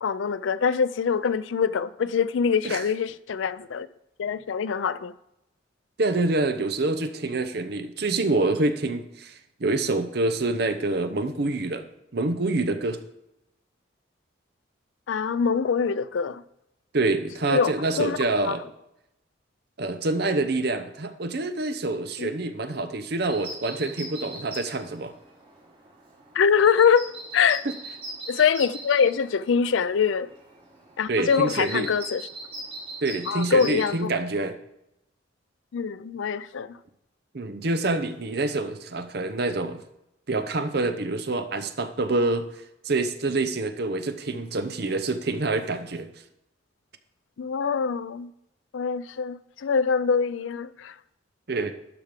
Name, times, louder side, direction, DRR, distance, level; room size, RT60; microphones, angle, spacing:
voice 1, 0.0-3.9 4.2-5.1 15.1-16.4 17.5-18.2 18.4-18.6 22.2-22.3 26.3-27.6 28.3-30.3 31.0-32.2 33.3-34.1 35.7-36.8 47.4-48.3 48.7-50.9, left 6 dB, 75° left, 0.4 m, -24 dB
voice 2, 6.0-11.8 12.1-13.0 16.9-18.6 19.8-25.1 27.6-27.7 31.1-31.9 33.0-34.6 37.3-39.8 40.3-42.5 42.8-46.1 51.5-51.7, right 2 dB, 55° right, 0.7 m, -26 dB
sound 1, 23.3-33.9, right 2 dB, 30° right, 2.9 m, -41 dB
12.0 x 4.6 x 5.1 m
head